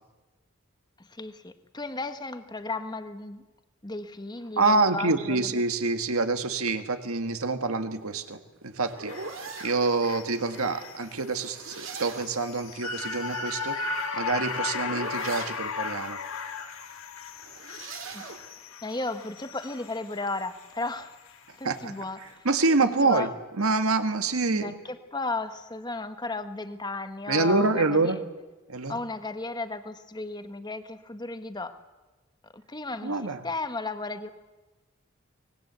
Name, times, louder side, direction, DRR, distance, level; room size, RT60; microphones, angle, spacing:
voice 1, 1.0-3.4 3.8-5.6 18.1-18.2 18.8-21.1 21.6-22.4 22.8-23.3 24.5-28.1 28.9-31.7 32.5-34.3, left 3 dB, 20° left, 9 dB, 1.2 m, -34 dB
voice 2, 4.6-16.2 21.6-21.9 22.5-23.3 23.6-24.7 27.3-28.2 28.7-28.9 33.0-33.4, right 3 dB, 90° right, 8 dB, 1.8 m, -26 dB
sound 1, 8.0-9.8 11.3-12.5 13.9-15.6 17.3-18.5, right 4 dB, 65° right, 2.7 m, -41 dB
sound 2, 9.1-21.4 21.8-21.9, left 4 dB, 75° left, 2.0 m, -36 dB
24.5 x 21.0 x 8.1 m, 1.2 s
head